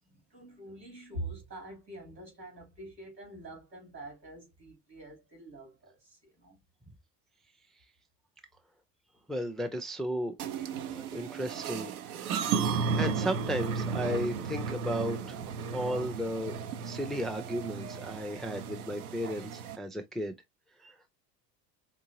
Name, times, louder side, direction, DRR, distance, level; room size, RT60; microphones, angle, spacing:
voice 1, 0.0-6.6, right 1 dB, 85° right, 3.3 m, -45 dB
voice 2, 9.3-10.4 10.9-11.9 12.2-12.5 13.0-15.4 15.7-16.5 16.8-20.3 20.8-20.9, equal, ahead, 0.5 m, -34 dB
sound 1, 10.4-19.8, right 6 dB, 60° right, 1.0 m, -34 dB
4.7 x 3.7 x 2.8 m
figure-of-eight pair, 75°, 50 cm